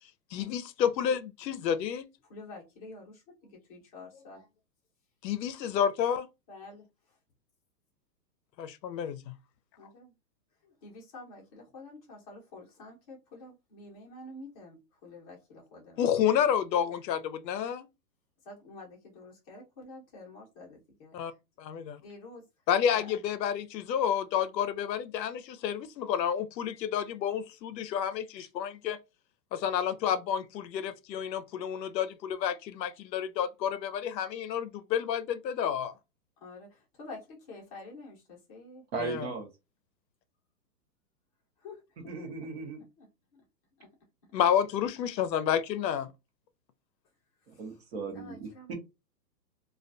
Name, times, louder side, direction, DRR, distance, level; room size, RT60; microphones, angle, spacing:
voice 1, 0.3-2.0 5.2-6.3 8.6-9.3 16.0-17.9 21.2-21.3 21.7-21.8 22.7-29.0 29.5-35.9 39.0-39.3 44.3-46.1, left 9 dB, 85° left, 0.6 m, -30 dB
voice 2, 2.3-4.5 6.5-6.8 9.8-10.1 10.6-16.5 18.4-21.1 22.0-22.4 22.9-23.1 36.4-38.8 41.6-41.8 42.2-42.3 42.7-43.1 43.3-43.4 43.8-43.9 47.5-47.8 48.1-48.7, left 2 dB, 20° left, 0.7 m, -48 dB
voice 3, 38.9-39.5 42.1-42.8 47.5-48.7, right 4 dB, 40° right, 0.8 m, -37 dB
2.3 x 2.2 x 2.5 m
hypercardioid pair, 155°, 49 cm